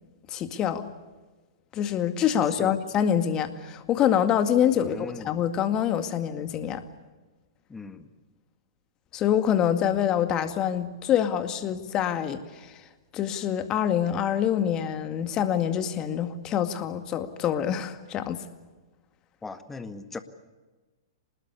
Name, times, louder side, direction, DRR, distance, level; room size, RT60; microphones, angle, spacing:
voice 1, 0.3-0.9 1.7-6.8 9.1-12.8 13.1-18.4, left 9 dB, 30° left, 9 dB, 2.1 m, -26 dB
voice 2, 4.7-5.3 7.7-8.1 19.4-20.2, left 4 dB, 10° left, 9 dB, 1.8 m, -39 dB
26.5 x 20.0 x 8.4 m, 1.3 s
hypercardioid pair, 115°, 2 cm